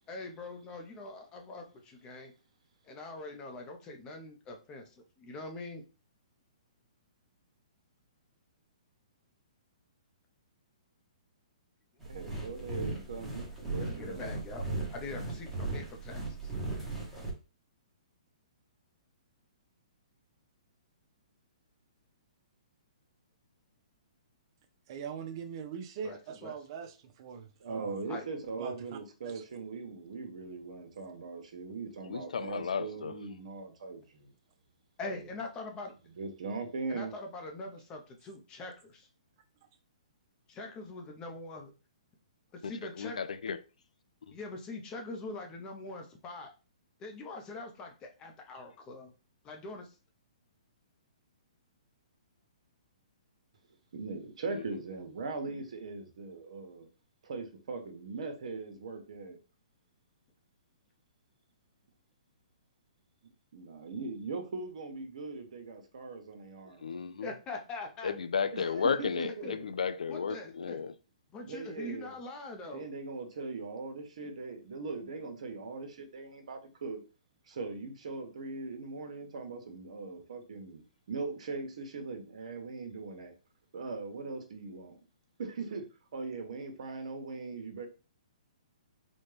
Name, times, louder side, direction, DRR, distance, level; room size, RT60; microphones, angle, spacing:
voice 1, 0.1-2.3 2.9-4.9 5.2-5.8 13.8-14.6 14.9-16.5 26.0-26.5 28.1-28.3 35.0-35.9 36.9-39.1 40.5-41.7 42.5-43.2 44.3-46.5 47.0-49.1 49.4-49.9 67.2-68.1 69.4-69.6 70.1-70.8 71.3-72.9, left 2 dB, 20° left, 0.7 m, -43 dB
sound 1, 12.0-17.3, right 2 dB, ahead, 1.1 m, -37 dB
voice 2, 12.0-14.3 27.6-34.3 35.1-35.3 36.0-37.2 53.9-56.9 57.2-59.4 63.5-66.9 68.5-69.5 71.4-72.2 72.7-77.0 77.5-83.3 83.7-85.0 85.4-85.8 86.1-87.9, right 4 dB, 65° right, 1.0 m, -40 dB
voice 3, 24.9-27.9 28.6-28.7 29.2-29.4, right 7 dB, 40° right, 0.6 m, -41 dB
voice 4, 32.1-33.1 42.6-42.7 43.0-43.6 66.8-67.3 68.0-70.9, left 6 dB, 85° left, 0.4 m, -33 dB
4.2 x 2.3 x 3.3 m
hypercardioid pair, 150°, 4 cm